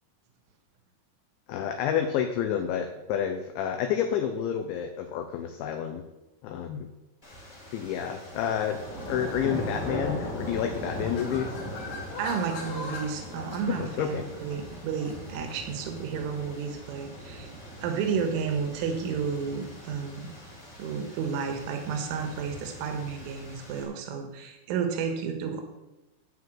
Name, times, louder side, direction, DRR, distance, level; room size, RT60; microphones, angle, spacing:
voice 1, 1.5-6.0 6.4-6.9 7.7-8.8 9.1-11.5 13.7-14.2, left 9 dB, 80° left, 5 dB, 2.9 m, -29 dB
sound 1, 7.2-23.8, equal, 10° left, 2.4 m, -40 dB
sound 2, 10.9-16.7, left 3 dB, 55° left, 3.0 m, -43 dB
voice 2, 12.2-17.5 17.8-20.3 20.8-25.6, right 6 dB, 75° right, 4 dB, 3.8 m, -31 dB
12.0 x 5.5 x 7.8 m, 1.0 s
omnidirectional pair, 5.8 m